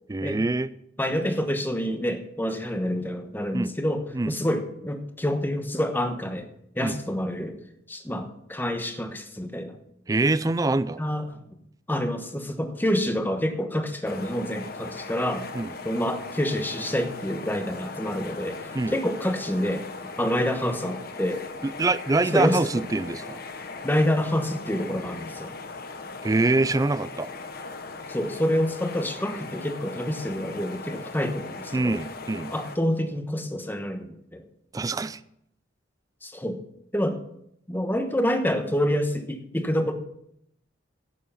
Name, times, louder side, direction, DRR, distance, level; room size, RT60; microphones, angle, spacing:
voice 1, 0.1-0.7 3.5-3.7 4.1-4.3 6.8-7.0 10.1-11.0 15.5-15.7 18.7-18.9 21.6-23.4 26.2-27.3 31.7-32.5 34.7-35.2, right 2 dB, 20° right, 16 dB, 0.4 m, -25 dB
voice 2, 1.0-6.5 6.8-7.6 7.9-9.8 11.0-11.2 11.9-15.4 15.8-19.8 20.2-21.5 22.3-22.6 23.8-25.5 28.1-32.0 32.5-34.4 36.2-36.6 36.9-37.2 37.7-39.9, equal, 10° left, 6 dB, 1.1 m, -27 dB
sound 1, 14.0-32.8, left 3 dB, 55° left, 1.0 m, -39 dB
11.5 x 8.4 x 5.6 m, 0.75 s
head